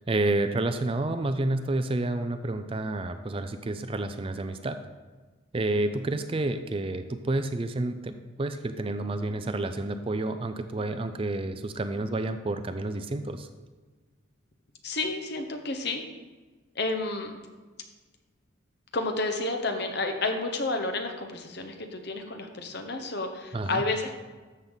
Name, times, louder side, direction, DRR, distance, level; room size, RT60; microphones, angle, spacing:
voice 1, 0.1-4.8 5.5-13.5 23.5-23.8, right 2 dB, 25° right, 9 dB, 0.4 m, -29 dB
voice 2, 14.8-16.0 16.7-17.3 18.9-24.1, left 2 dB, 55° left, 5 dB, 1.1 m, -30 dB
13.0 x 6.8 x 4.0 m, 1.3 s
head